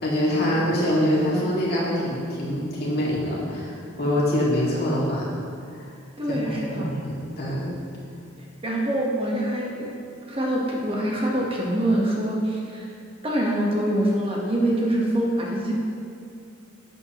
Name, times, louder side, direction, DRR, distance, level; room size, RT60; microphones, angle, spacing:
voice 1, 0.0-5.3 5.7-5.9 6.3-7.7, equal, 50° left, -6 dB, 2.3 m, -25 dB
voice 2, 6.2-6.9 8.6-9.7 10.3-12.9 13.2-15.7, right 1 dB, 30° right, -3 dB, 1.3 m, -24 dB
11.5 x 7.7 x 3.1 m, 2.4 s
head